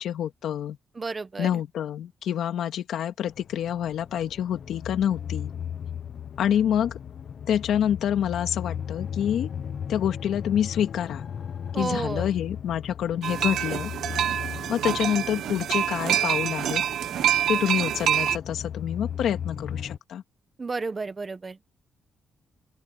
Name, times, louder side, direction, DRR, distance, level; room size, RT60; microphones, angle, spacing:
voice 1, 0.0-0.8 1.4-5.5 6.4-6.9 7.5-9.5 9.9-11.3 11.8-13.9 14.7-16.8 17.5-20.2, left 9 dB, 80° left, 2.4 m, -27 dB
voice 2, 0.9-1.6 11.7-12.3 20.6-21.6, right 4 dB, 20° right, 1.2 m, -32 dB
sound 1, 3.3-20.0, left 8 dB, 45° left, 1.1 m, -37 dB
sound 2, 13.2-18.4, right 10 dB, 80° right, 1.3 m, -26 dB
open air
wide cardioid pair, 170°, 0 cm